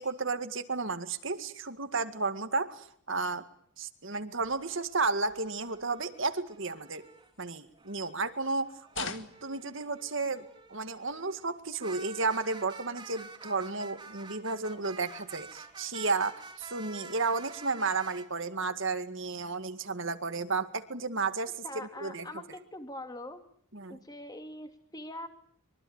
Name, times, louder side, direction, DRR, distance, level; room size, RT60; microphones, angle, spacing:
voice 1, 0.0-3.4 3.8-7.0 7.4-8.7 9.0-10.4 10.7-22.3 23.7-24.0, right 4 dB, 55° right, 9 dB, 2.0 m, -33 dB
sound 1, 4.4-7.3 7.7-18.3, right 3 dB, 20° right, 3.2 m, -50 dB
sound 2, 6.8-8.5 8.9-10.4 10.9-12.3 12.6-13.0 13.3-13.4 13.7-14.1 14.6-14.8 15.1-15.6 15.9-17.1, left 6 dB, 55° left, 2.1 m, -47 dB
voice 2, 21.6-23.4 23.9-25.3, left 1 dB, 15° left, 7 dB, 2.6 m, -43 dB
25.0 x 24.0 x 8.9 m, 0.63 s
head